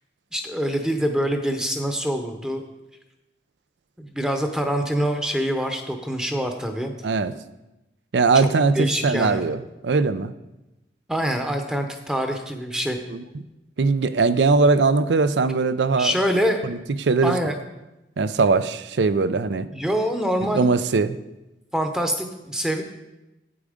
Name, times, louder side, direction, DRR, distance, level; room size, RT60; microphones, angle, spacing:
voice 1, 0.3-2.6 4.0-6.9 8.3-8.5 8.8-9.4 11.1-13.0 16.0-16.6 17.2-17.6 19.7-20.7 21.7-22.8, equal, 5° right, 5 dB, 0.7 m, -25 dB
voice 2, 7.0-7.3 8.1-10.3 13.1-13.2 13.8-16.1 16.6-17.4 18.2-19.7 20.5-21.2, right 4 dB, 90° right, 13 dB, 0.5 m, -20 dB
8.7 x 8.4 x 5.0 m, 0.98 s
head